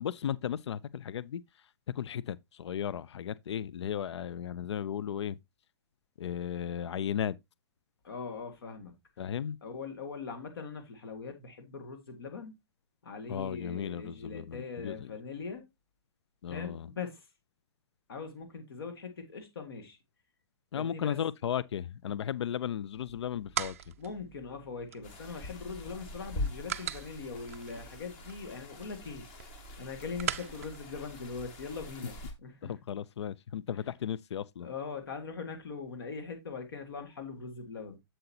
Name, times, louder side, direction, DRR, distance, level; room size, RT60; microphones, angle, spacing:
voice 1, 0.0-1.4 1.9-5.4 6.2-7.4 9.2-9.6 13.3-14.9 16.4-16.9 20.7-23.8 32.6-34.7, left 9 dB, 80° left, 0.4 m, -35 dB
voice 2, 8.0-8.9 9.6-12.5 13.0-15.6 16.5-17.3 18.1-20.0 20.7-21.2 24.0-29.3 29.8-32.7 33.7-33.8 34.6-38.0, left 5 dB, 60° left, 1.8 m, -41 dB
sound 1, 23.0-31.9, right 10 dB, 30° right, 0.4 m, -42 dB
sound 2, 25.0-32.3, left 2 dB, 20° left, 1.3 m, -43 dB
7.9 x 7.8 x 2.7 m
hypercardioid pair, 175°, 14 cm